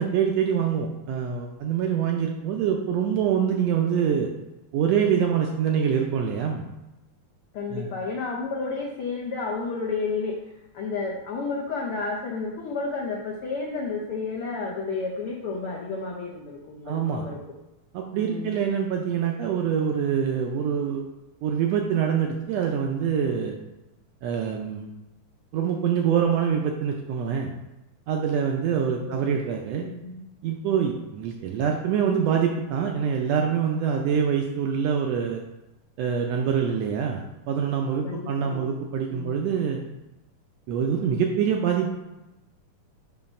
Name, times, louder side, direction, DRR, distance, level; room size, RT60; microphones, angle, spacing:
voice 1, 0.0-4.3 4.7-6.6 7.7-7.9 16.9-17.2 17.9-21.0 21.4-23.5 24.2-24.9 25.5-27.5 28.1-29.9 30.4-35.4 36.0-39.8 40.7-41.9, right 7 dB, 80° right, 2 dB, 1.5 m, -25 dB
voice 2, 7.5-17.4 18.1-18.6 29.0-29.4 29.8-30.2 38.0-38.7 39.1-39.4, left 4 dB, 80° left, -2 dB, 1.2 m, -31 dB
7.1 x 3.0 x 5.2 m, 0.97 s
omnidirectional pair, 3.4 m